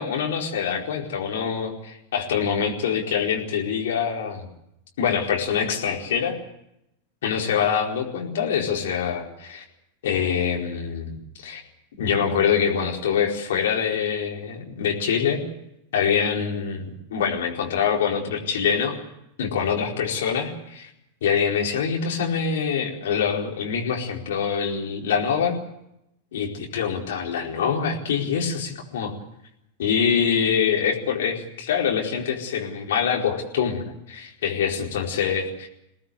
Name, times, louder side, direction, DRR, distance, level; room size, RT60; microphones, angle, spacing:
voice 1, 0.0-4.4 5.0-6.4 7.2-9.6 10.0-11.6 12.0-15.4 15.9-19.0 19.4-20.9 21.2-25.6 26.3-29.1 29.8-35.7, left 7 dB, 60° left, 0 dB, 4.5 m, -25 dB
24.0 x 18.5 x 8.2 m, 0.81 s
figure-of-eight pair, 90°, 0 cm